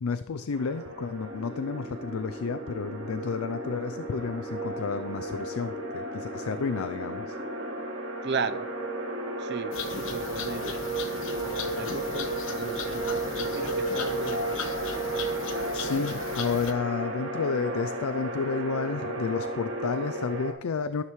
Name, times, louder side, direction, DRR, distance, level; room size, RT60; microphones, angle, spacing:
voice 1, 0.0-7.4 15.7-21.0, left 5 dB, 85° left, 12 dB, 0.5 m, -31 dB
sound 1, 0.5-20.5, right 1 dB, 80° right, 2.2 m, -33 dB
sound 2, 1.3-7.8, right 1 dB, 25° right, 2.9 m, -42 dB
voice 2, 8.2-8.7 9.4-10.8 11.7-14.7, right 4 dB, 50° right, 12 dB, 0.7 m, -36 dB
sound 3, 9.7-16.7, left 5 dB, 65° left, 1.2 m, -38 dB
13.0 x 12.0 x 3.2 m, 0.95 s
head